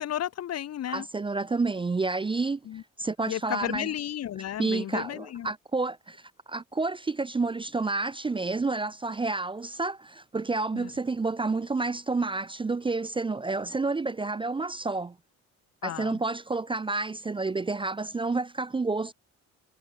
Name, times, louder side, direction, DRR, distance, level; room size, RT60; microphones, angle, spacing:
voice 1, 0.0-1.1 2.6-2.8 3.3-5.5 10.7-10.9 15.8-16.2, left 11 dB, 55° left, 0.9 m, -33 dB
voice 2, 0.9-2.6 3.0-3.9 4.6-6.2 6.5-15.2 15.8-19.1, right 3 dB, 15° right, 0.5 m, -29 dB
cardioid pair, 90°, 30 cm